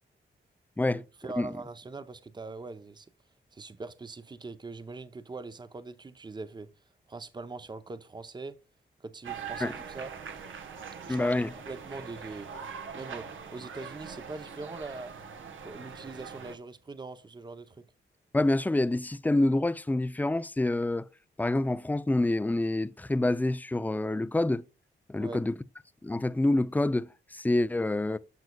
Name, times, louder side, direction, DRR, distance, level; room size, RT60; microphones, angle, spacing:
voice 1, 0.9-3.1 3.5-6.7 7.1-8.6 9.0-10.1 11.1-12.5 12.9-15.1 15.6-17.8 25.2-25.4, right 3 dB, 20° right, 0.7 m, -42 dB
sound 1, 9.2-16.5, right 6 dB, 80° right, 1.2 m, -42 dB
voice 2, 11.1-11.5 18.3-21.1 21.4-24.6 25.1-25.6 26.0-28.2, left 2 dB, 10° left, 0.4 m, -27 dB
10.5 x 6.7 x 2.3 m
cardioid pair, 80°, 20 cm